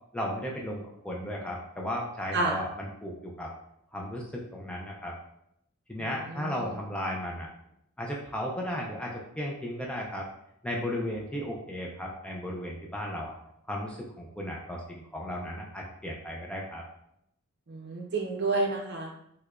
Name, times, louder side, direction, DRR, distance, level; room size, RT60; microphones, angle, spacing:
voice 1, 0.1-3.5 3.9-5.1 5.9-7.5 8.0-10.3 10.6-13.3 13.7-16.8, equal, 5° left, -2 dB, 0.3 m, -35 dB
voice 2, 6.0-6.7 17.7-19.1, right 3 dB, 50° right, 2 dB, 0.6 m, -30 dB
4.6 x 2.2 x 2.3 m, 0.77 s
head